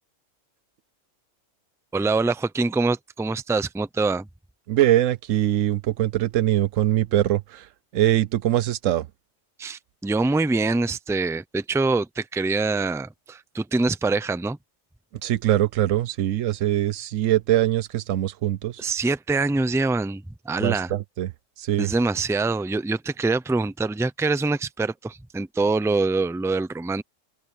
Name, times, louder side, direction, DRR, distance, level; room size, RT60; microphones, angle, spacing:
voice 1, 1.9-4.3 9.6-14.6 18.8-20.9 21.8-27.0, right 3 dB, 5° right, 0.3 m, -24 dB
voice 2, 4.7-7.7 7.9-9.1 15.2-18.8 20.6-21.3 21.6-21.9, right 13 dB, 75° right, 1.0 m, -22 dB
open air
omnidirectional pair, 1.4 m